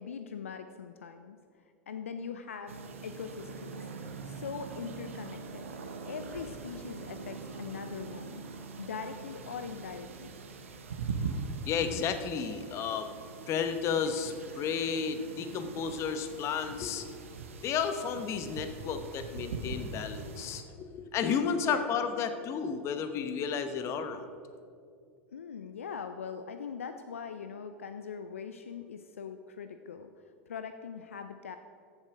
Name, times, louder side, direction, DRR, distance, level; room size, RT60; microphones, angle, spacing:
voice 1, 0.0-1.4 1.9-3.8 4.3-5.7 6.1-8.4 8.8-10.3 21.6-21.8 25.3-30.1 30.5-31.6, left 6 dB, 80° left, 9 dB, 0.5 m, -41 dB
sound 1, 2.7-20.6, right 4 dB, 80° right, 1.1 m, -42 dB
voice 2, 11.7-13.1 13.5-17.1 17.6-24.3, left 6 dB, 40° left, 9 dB, 1.0 m, -32 dB
14.5 x 7.5 x 4.8 m, 2.4 s
hypercardioid pair, 85°, 7 cm